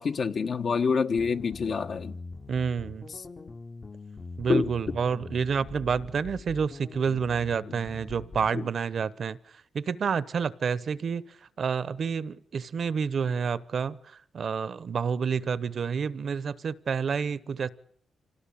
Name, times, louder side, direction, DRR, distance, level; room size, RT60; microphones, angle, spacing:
voice 1, 0.0-2.2 4.5-4.7 8.5-8.7, left 5 dB, 55° left, 1.1 m, -26 dB
sound 1, 1.2-8.6, left 3 dB, 30° left, 0.9 m, -43 dB
voice 2, 2.5-3.1 4.4-9.4 9.7-11.2 11.6-14.0 14.3-17.7, right 6 dB, 55° right, 0.9 m, -29 dB
26.5 x 18.5 x 8.6 m
cardioid pair, 115°, 0 cm